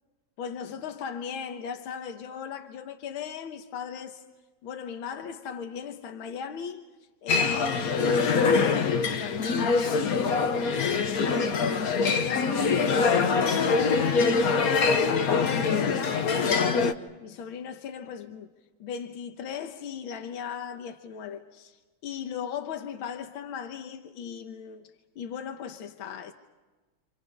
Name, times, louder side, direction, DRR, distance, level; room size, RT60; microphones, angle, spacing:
voice 1, 0.4-4.2 4.6-6.9 7.2-16.8 17.2-18.5 18.8-24.9 25.2-26.3, left 7 dB, 80° left, 1.9 m, -38 dB
sound 1, 7.3-16.9, left 5 dB, 50° left, 1.4 m, -24 dB
28.5 x 28.0 x 5.4 m
omnidirectional pair, 2.2 m